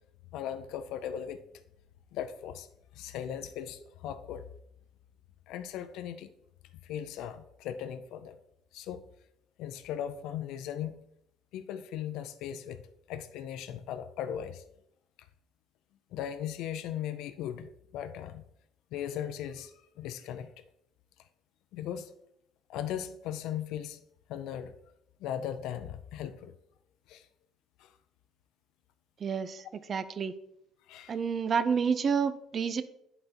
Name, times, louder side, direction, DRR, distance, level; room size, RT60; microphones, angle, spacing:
voice 1, 0.3-1.4 2.1-2.7 2.9-4.5 5.5-6.3 6.8-8.4 8.7-9.0 9.6-11.0 11.5-12.8 13.1-14.6 16.1-18.4 18.9-20.5 21.7-22.1 22.7-24.0 24.3-24.7 25.2-26.5 27.1-27.3 27.8-27.9 30.9-31.2, left 9 dB, 80° left, 0.4 m, -38 dB
voice 2, 29.2-29.6 29.9-30.3 31.1-32.8, right 6 dB, 40° right, 0.4 m, -29 dB
11.0 x 3.9 x 2.8 m
cardioid pair, 130°, 0 cm